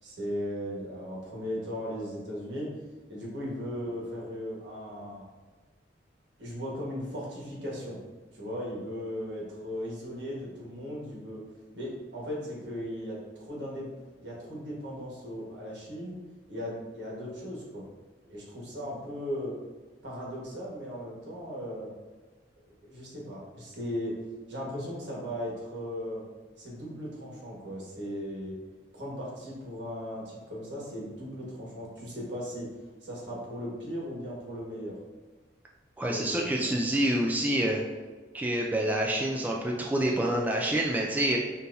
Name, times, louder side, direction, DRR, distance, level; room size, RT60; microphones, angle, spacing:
voice 1, 0.0-2.7 3.1-5.2 6.4-8.0 8.3-11.4 11.7-13.9 14.2-16.2 16.5-17.9 18.2-19.5 20.0-21.9 22.6-24.1 24.5-26.2 26.6-28.6 28.9-32.7 33.0-35.0 36.0-36.7, equal, 70° right, -4 dB, 1.4 m, -37 dB
voice 2, 36.0-37.8 38.3-41.4, right 1 dB, 10° right, -1 dB, 0.3 m, -27 dB
5.7 x 2.7 x 2.6 m, 1.3 s
head